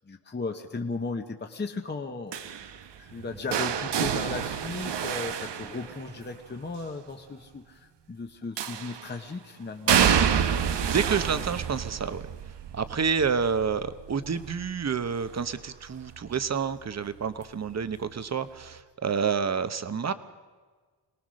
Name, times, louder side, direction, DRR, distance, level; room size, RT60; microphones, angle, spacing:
voice 1, 0.1-2.5 3.0-10.0, left 3 dB, 25° left, 4 dB, 1.1 m, -36 dB
sound 1, 2.3-6.4 8.6-9.2 9.9-15.7 16.0-16.4 17.7-17.8, right 8 dB, 80° right, 1.1 m, -28 dB
voice 2, 10.9-12.3 12.7-20.1, right 6 dB, 40° right, 12 dB, 1.0 m, -29 dB
27.0 x 19.0 x 6.4 m, 1.4 s
wide cardioid pair, 135°, 41 cm